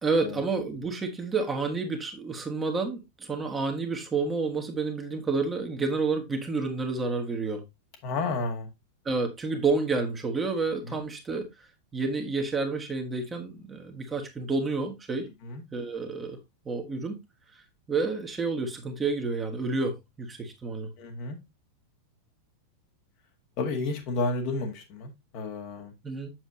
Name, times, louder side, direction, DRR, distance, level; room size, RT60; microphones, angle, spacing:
voice 1, 0.0-7.6 9.0-11.5 11.9-15.3 15.7-16.4 16.6-17.2 17.9-20.9 26.0-26.3, right 4 dB, 15° right, 1.7 m, -29 dB
voice 2, 8.0-8.7 10.8-11.0 15.4-15.6 21.0-21.4 23.6-25.9, left 3 dB, 45° left, 1.8 m, -31 dB
7.5 x 6.9 x 2.7 m
figure-of-eight pair, 90°, 0 cm